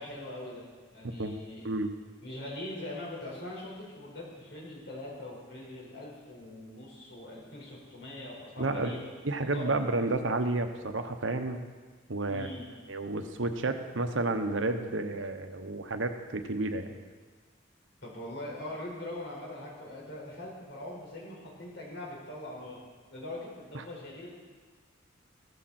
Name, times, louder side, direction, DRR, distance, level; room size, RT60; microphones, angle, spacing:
voice 1, 0.0-1.7 2.2-9.1 9.5-9.8 12.3-12.7 18.0-22.8 23.1-24.3, left 1 dB, 65° left, -4 dB, 4.9 m, -42 dB
voice 2, 8.6-8.9 9.2-11.6 12.1-12.5 12.9-16.9, right 2 dB, 80° right, 7 dB, 1.1 m, -31 dB
15.0 x 14.0 x 4.4 m, 1.4 s
head